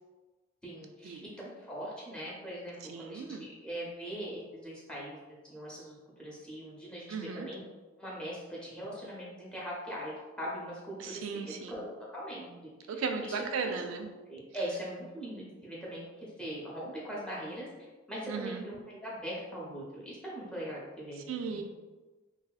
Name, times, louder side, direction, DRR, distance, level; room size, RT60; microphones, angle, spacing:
voice 1, 0.6-7.6 8.0-13.7 14.3-17.7 18.1-21.6, equal, 5° left, -6 dB, 0.7 m, -41 dB
voice 2, 2.9-3.5 7.1-7.5 11.0-11.8 12.9-14.1 18.3-18.6 21.3-21.6, right 5 dB, 75° right, 6 dB, 0.3 m, -36 dB
3.0 x 2.7 x 2.3 m, 1.2 s
head